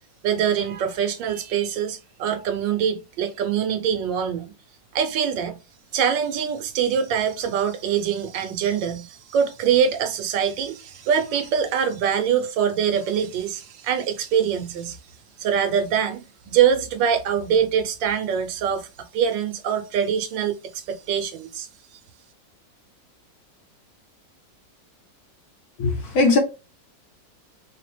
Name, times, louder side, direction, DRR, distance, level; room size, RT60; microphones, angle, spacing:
voice 1, 0.2-4.5 4.9-5.6 5.9-15.0 15.4-21.7, right 8 dB, 90° right, 1.4 m, -24 dB
voice 2, 25.8-26.4, left 3 dB, 60° left, 1.0 m, -19 dB
4.3 x 2.1 x 3.2 m
omnidirectional pair, 2.0 m